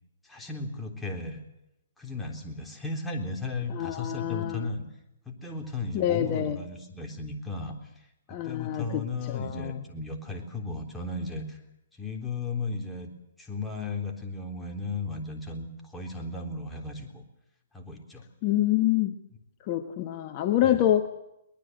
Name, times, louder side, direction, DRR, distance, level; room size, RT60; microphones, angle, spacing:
voice 1, 0.2-1.4 2.0-4.9 5.3-7.8 8.3-11.6 12.0-13.1 13.4-17.2 17.7-18.2 20.6-20.9, left 3 dB, 5° left, 1 dB, 3.6 m, -35 dB
voice 2, 3.7-4.7 5.9-6.6 8.3-9.8 18.4-19.1 19.6-21.1, left 12 dB, 40° left, 6 dB, 1.3 m, -26 dB
22.5 x 20.0 x 7.9 m, 0.86 s
hypercardioid pair, 135°, 0 cm